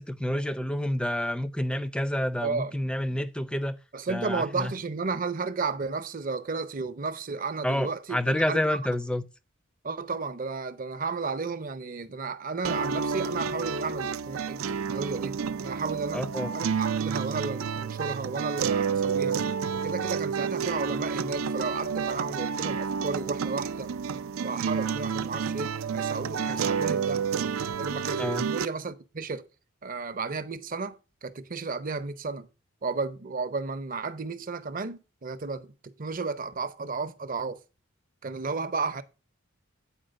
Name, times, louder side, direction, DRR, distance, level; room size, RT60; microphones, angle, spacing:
voice 1, 0.0-3.8 4.1-4.7 7.6-9.2 16.1-16.5 28.2-28.5, left 1 dB, 5° left, 0.5 m, -29 dB
voice 2, 2.4-2.8 3.9-8.8 9.8-19.4 19.7-23.9 24.4-27.2 27.8-29.5 29.8-32.5 32.8-37.6 38.2-39.0, right 4 dB, 40° right, 0.6 m, -33 dB
sound 1, 12.6-28.7, right 6 dB, 80° right, 0.5 m, -30 dB
8.9 x 4.4 x 6.3 m
head